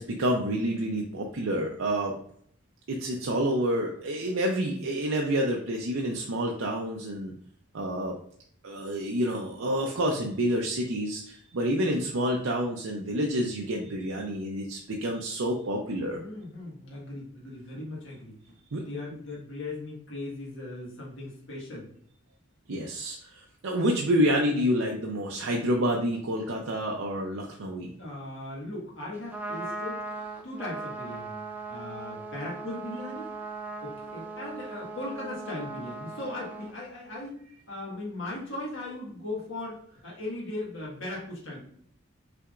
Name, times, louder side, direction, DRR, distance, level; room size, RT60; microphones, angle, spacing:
voice 1, 0.0-2.2 2.9-7.3 7.7-8.2 8.6-16.2 18.7-18.9 22.7-27.9, equal, 80° right, 0 dB, 0.6 m, -28 dB
voice 2, 16.1-21.9 28.0-30.0 30.4-33.3 33.8-37.4 37.7-41.6, left 2 dB, 70° left, -4 dB, 1.7 m, -38 dB
Trumpet, 29.1-36.7, right 3 dB, 10° right, 0.4 m, -39 dB
5.8 x 3.4 x 2.5 m, 0.62 s
head